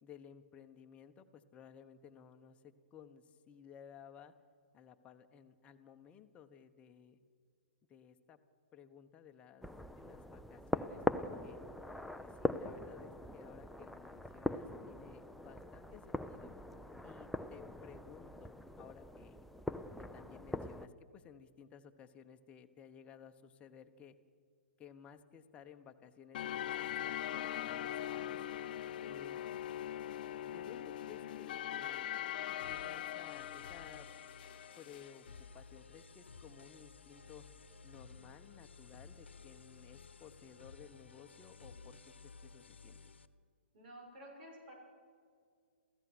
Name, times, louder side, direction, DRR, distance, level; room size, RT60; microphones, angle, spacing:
voice 1, 0.0-4.3 4.7-7.2 7.9-8.4 8.7-9.7 9.9-11.6 12.2-16.5 17.0-19.4 20.0-24.2 24.8-28.4 29.0-29.4 30.4-32.1 32.6-34.1 34.8-37.4 37.8-43.1, left 8 dB, 20° left, 6 dB, 1.2 m, -57 dB
sound 1, 9.6-20.9, left 1 dB, ahead, 0.6 m, -41 dB
sound 2, 26.3-35.1, left 11 dB, 50° left, 0.6 m, -41 dB
sound 3, 32.6-43.3, left 4 dB, 80° left, 1.0 m, -56 dB
voice 2, 43.7-44.7, equal, 55° right, 0 dB, 6.9 m, -52 dB
27.5 x 15.5 x 6.3 m, 2.1 s
hypercardioid pair, 125°, 6 cm